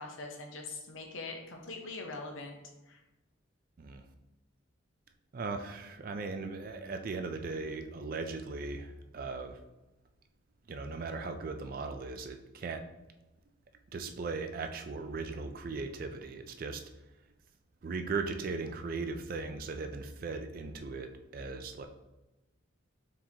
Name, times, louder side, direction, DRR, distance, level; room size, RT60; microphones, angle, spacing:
voice 1, 0.0-2.6 2.9-3.0, left 3 dB, 75° left, 2 dB, 0.8 m, -42 dB
voice 2, 5.3-9.6 10.7-12.8 13.9-16.8 17.8-21.9, right 4 dB, 45° right, 7 dB, 0.3 m, -38 dB
4.7 x 3.7 x 2.8 m, 1.0 s
head